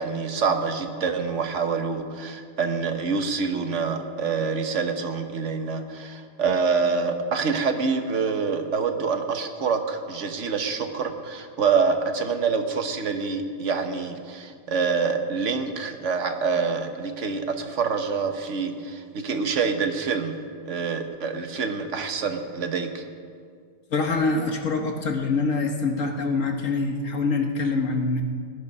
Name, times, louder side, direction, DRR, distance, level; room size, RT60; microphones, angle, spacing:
voice 1, 0.0-20.4 20.6-23.1, right 5 dB, 45° right, 6 dB, 1.2 m, -26 dB
voice 2, 23.9-28.2, left 3 dB, 50° left, 4 dB, 1.4 m, -25 dB
18.5 x 11.5 x 5.4 m, 2.1 s
omnidirectional pair, 2.0 m